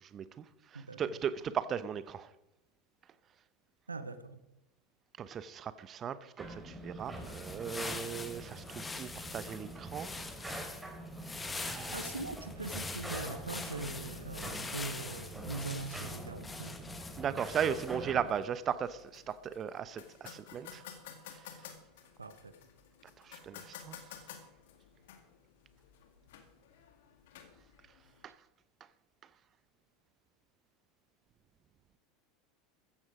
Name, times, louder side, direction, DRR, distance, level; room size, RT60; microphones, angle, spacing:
voice 1, 0.0-0.4 0.7-2.3 5.2-10.1 11.6-12.0 17.2-20.8 23.2-24.0 28.2-28.3, right 8 dB, 35° right, 15 dB, 0.9 m, -37 dB
voice 2, 0.7-1.2 3.9-4.4 11.9-16.8 22.2-22.5, right 3 dB, 90° right, 13 dB, 1.0 m, -42 dB
sound 1, 6.4-18.3, right 1 dB, 10° right, 4.4 m, -45 dB
sound 2, 7.1-18.1, left 3 dB, 15° left, 1.7 m, -44 dB
sound 3, 18.2-28.3, left 8 dB, 65° left, 2.0 m, -53 dB
15.0 x 14.5 x 5.0 m, 0.89 s
figure-of-eight pair, 80°, 0 cm